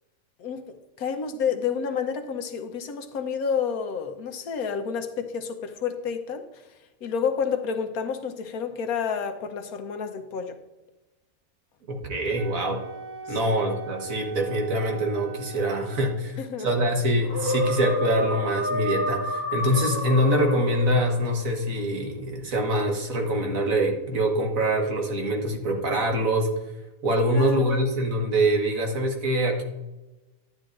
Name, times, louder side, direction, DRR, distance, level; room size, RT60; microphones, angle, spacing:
voice 1, 0.4-10.6 13.3-13.5 16.4-16.7 27.3-27.8, left 6 dB, 80° left, 7 dB, 1.3 m, -30 dB
voice 2, 11.9-12.8 13.3-26.5 27.0-29.6, right 1 dB, 65° right, 2 dB, 1.8 m, -24 dB
Wind instrument woodwind instrument, 12.3-16.2, right 4 dB, 20° right, 1.2 m, -40 dB
sound 1, 17.2-21.3, equal, 15° left, 1.1 m, -29 dB
11.5 x 9.4 x 2.6 m, 1.0 s
omnidirectional pair, 1.5 m